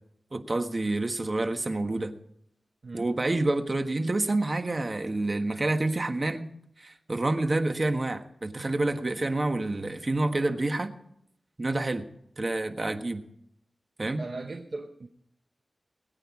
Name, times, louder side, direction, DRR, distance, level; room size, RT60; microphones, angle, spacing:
voice 1, 0.3-2.1 2.9-6.5 6.8-10.9 11.6-12.0 12.4-13.2 14.0-14.2, right 2 dB, 35° right, 7 dB, 1.4 m, -28 dB
voice 2, 14.2-15.1, right 3 dB, 55° right, 4 dB, 1.1 m, -38 dB
21.0 x 9.1 x 4.9 m, 0.72 s
wide cardioid pair, 90°, 0 cm